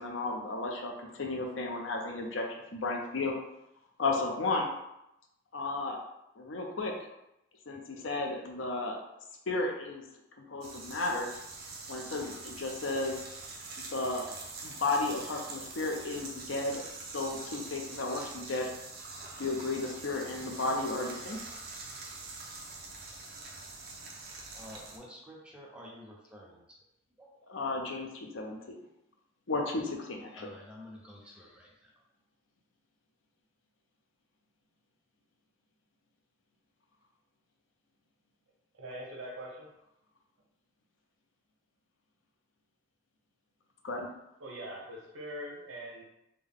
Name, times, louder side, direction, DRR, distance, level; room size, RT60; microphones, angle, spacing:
voice 1, 0.0-2.5 2.7-3.3 4.0-4.7 5.5-6.0 6.4-7.1 7.7-9.0 9.5-10.0 10.5-11.3 11.9-13.2 13.9-14.3 14.6-16.8 17.1-18.7 19.4-21.4 27.5-28.8 29.5-30.6 43.8-44.1, left 3 dB, 70° left, 1 dB, 0.6 m, -33 dB
Hydrant pouring(Ambient Omni), 10.6-25.0, right 3 dB, 50° right, 0.6 m, -44 dB
voice 2, 24.5-26.8 27.2-27.3 30.4-31.7, equal, 5° right, -3 dB, 0.6 m, -50 dB
voice 3, 38.7-39.7 44.4-46.0, equal, 85° right, -3 dB, 0.8 m, -42 dB
3.6 x 2.2 x 3.5 m, 0.84 s
head